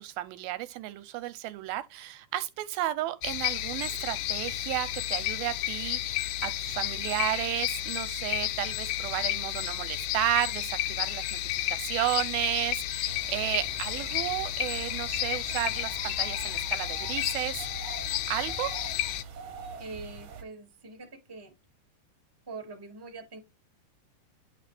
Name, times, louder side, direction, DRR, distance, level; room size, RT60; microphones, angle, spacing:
voice 1, 0.0-11.4 11.7-17.7 18.3-18.7, right 14 dB, 80° right, 2.3 m, -33 dB
sound 1, 3.2-19.2, left 13 dB, 85° left, 1.8 m, -32 dB
sound 2, 13.0-20.4, right 6 dB, 60° right, 1.6 m, -44 dB
voice 2, 19.8-21.5 22.5-23.4, right 3 dB, 15° right, 0.9 m, -43 dB
10.5 x 4.1 x 3.4 m
omnidirectional pair, 4.6 m